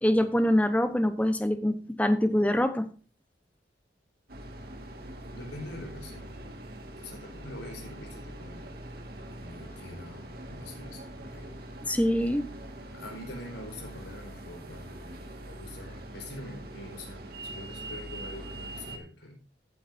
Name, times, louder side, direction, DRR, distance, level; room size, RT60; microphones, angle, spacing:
voice 1, 0.0-2.9 11.9-12.4, equal, 10° left, 9 dB, 0.9 m, -24 dB
sound 1, 4.3-19.0, right 1 dB, 55° right, 1.7 m, -43 dB
voice 2, 5.3-6.6 7.0-8.7 9.4-11.8 12.9-15.2 15.5-19.4, left 1 dB, 80° left, 1 dB, 4.6 m, -44 dB
15.5 x 8.6 x 2.7 m, 0.36 s
head